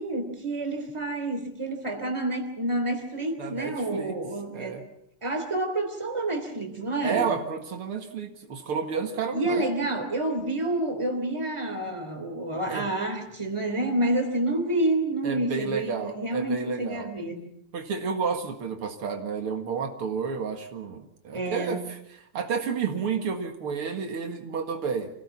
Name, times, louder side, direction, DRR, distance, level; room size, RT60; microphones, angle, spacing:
voice 1, 0.0-4.8 5.2-7.3 9.3-17.5 21.3-21.8, right 1 dB, 15° right, 4 dB, 3.2 m, -29 dB
voice 2, 3.4-4.2 4.5-4.8 7.0-9.7 12.7-12.9 15.2-17.1 17.7-22.0 22.3-25.1, right 6 dB, 80° right, 5 dB, 2.7 m, -31 dB
26.0 x 17.0 x 7.3 m, 0.78 s
omnidirectional pair, 2.4 m